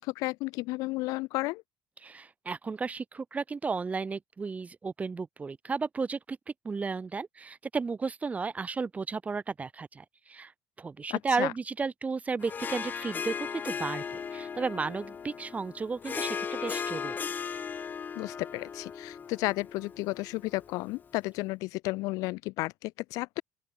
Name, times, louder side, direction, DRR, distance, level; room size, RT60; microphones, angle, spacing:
voice 1, 0.0-1.6 11.1-11.5 18.1-23.4, left 22 dB, 75° left, 1.0 m, -33 dB
voice 2, 2.0-6.4 6.6-10.5 10.8-14.0 14.3-17.2, right 4 dB, 25° right, 0.7 m, -33 dB
Harp, 12.4-21.1, left 6 dB, 30° left, 0.4 m, -37 dB
open air
supercardioid pair, 90°, 6 cm